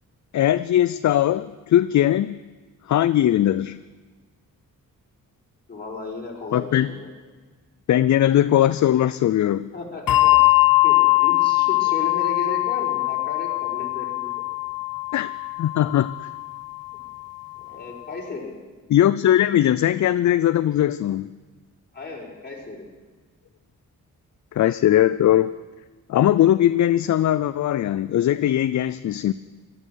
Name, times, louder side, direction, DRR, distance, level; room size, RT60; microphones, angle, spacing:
voice 1, 0.3-2.4 2.9-3.8 6.5-6.9 7.9-9.7 15.1-15.3 15.6-16.1 18.9-21.3 24.5-25.5 26.1-29.3, left 12 dB, 55° left, 14 dB, 0.5 m, -19 dB
voice 2, 5.7-7.1 9.7-10.6 10.8-14.3 17.6-18.5 21.9-22.8, left 3 dB, 30° left, -3 dB, 5.0 m, -35 dB
Bell, 10.1-16.9, left 21 dB, 75° left, 1.0 m, -21 dB
17.5 x 13.0 x 6.3 m, 1.3 s
cardioid pair, 85°, 34 cm